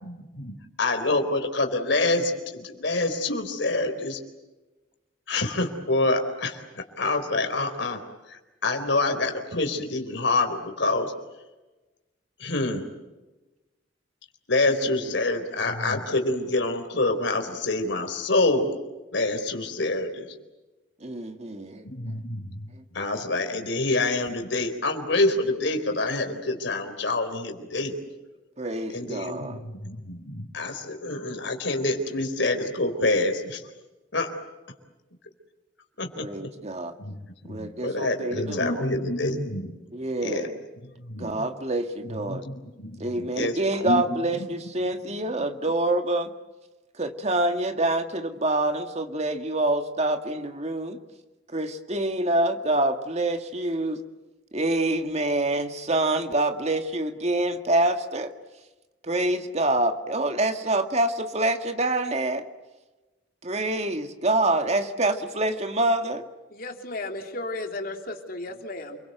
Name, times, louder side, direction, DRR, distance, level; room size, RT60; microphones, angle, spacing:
voice 1, 0.0-4.2 5.3-8.0 8.3-11.1 12.4-12.8 14.5-18.7 19.1-20.3 21.8-22.6 22.9-27.9 28.9-33.6 34.1-34.3 36.0-36.5 37.0-39.8 40.2-40.5 41.1-41.4 42.3-44.0, left 2 dB, 70° left, 6 dB, 4.1 m, -27 dB
voice 2, 21.0-21.8 22.8-22.9 28.6-29.6 36.2-36.9 37.4-38.8 39.9-40.6 41.2-42.5 43.0-46.3 47.0-51.0 51.5-54.0 54.5-58.3 59.0-62.5 63.4-66.2, right 2 dB, 35° right, 6 dB, 1.9 m, -26 dB
voice 3, 66.5-69.0, left 2 dB, 50° left, 4 dB, 3.1 m, -34 dB
29.0 x 23.0 x 8.1 m, 1.1 s
head